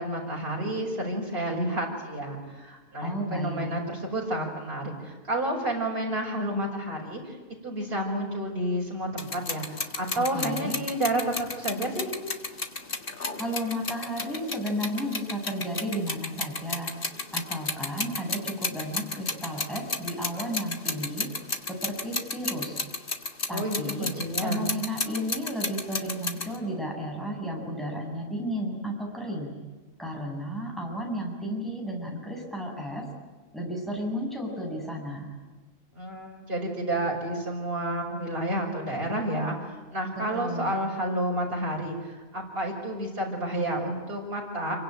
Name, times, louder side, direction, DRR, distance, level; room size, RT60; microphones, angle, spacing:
voice 1, 0.0-7.4 7.6-12.1 23.5-24.6 35.9-44.8, right 1 dB, 45° right, -2 dB, 5.8 m, -30 dB
voice 2, 3.0-3.8 10.1-10.8 13.4-16.9 17.3-21.3 21.7-22.8 23.5-24.1 24.4-29.5 30.0-33.1 33.5-35.4 40.1-40.7, equal, ahead, 0 dB, 7.4 m, -33 dB
sound 1, 9.2-26.6, left 3 dB, 40° left, 1.9 m, -33 dB
27.5 x 23.5 x 9.1 m, 1.3 s
omnidirectional pair, 1.4 m